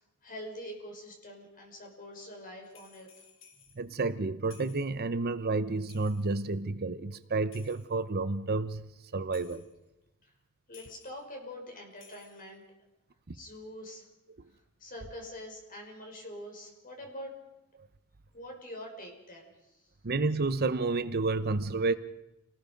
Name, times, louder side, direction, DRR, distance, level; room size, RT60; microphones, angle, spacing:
voice 1, 0.2-3.3 10.7-12.6 13.3-14.0 14.8-17.3 18.3-19.5, left 1 dB, 40° left, 1 dB, 5.8 m, -44 dB
sound 1, 2.6-3.8 4.4-5.0 5.9-6.5 7.5-8.1 9.3-9.7 10.7-11.2 11.9-12.5, left 6 dB, 60° left, 3.6 m, -57 dB
voice 2, 3.8-9.6 20.0-21.9, right 3 dB, 45° right, 12 dB, 0.8 m, -30 dB
29.5 x 19.5 x 5.3 m, 0.93 s
head